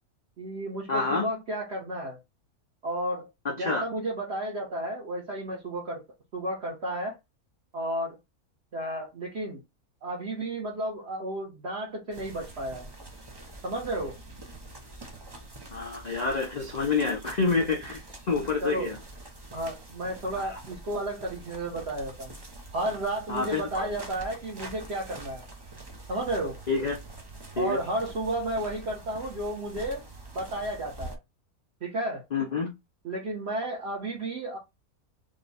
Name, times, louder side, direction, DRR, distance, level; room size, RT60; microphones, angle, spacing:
voice 1, 0.4-2.2 2.8-3.3 3.6-6.0 6.3-7.2 7.7-8.2 8.7-9.6 10.0-12.9 13.6-14.2 18.6-18.9 19.5-22.3 22.7-25.4 26.1-26.6 27.6-30.0 30.3-31.2 31.8-32.2 33.0-34.6, right 1 dB, 50° right, 1.3 m, -32 dB
voice 2, 0.9-1.3 3.4-3.8 15.7-18.0 18.3-19.0 20.4-20.6 23.3-23.9 26.7-27.0 27.6-27.8 32.3-32.7, left 4 dB, 80° left, 0.3 m, -28 dB
sound 1, 12.1-31.2, right 2 dB, 25° right, 0.5 m, -45 dB
3.6 x 2.3 x 4.0 m
omnidirectional pair, 1.6 m